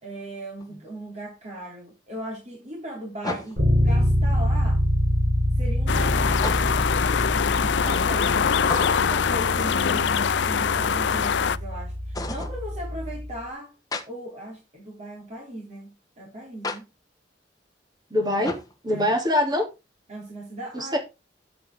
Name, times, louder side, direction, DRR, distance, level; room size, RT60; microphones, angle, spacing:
voice 1, 0.0-4.8 5.6-6.4 7.2-8.6 9.0-13.7 14.1-16.9 18.9-19.1 20.1-20.9, right 1 dB, 40° right, 3.6 m, -38 dB
sound 1, 0.6-0.7 3.2-3.8 6.3-6.9 8.6-9.2 12.1-12.6 13.9-14.1 16.6-16.8 18.4-18.7, left 2 dB, 20° left, 1.4 m, -33 dB
Bass guitar, 3.6-13.4, equal, 85° right, 4.2 m, -25 dB
sound 2, 5.9-11.6, left 7 dB, 85° left, 0.5 m, -23 dB
voice 2, 18.1-18.6 18.8-19.6 20.7-21.0, left 1 dB, 25° right, 3.0 m, -23 dB
9.7 x 8.0 x 3.7 m
head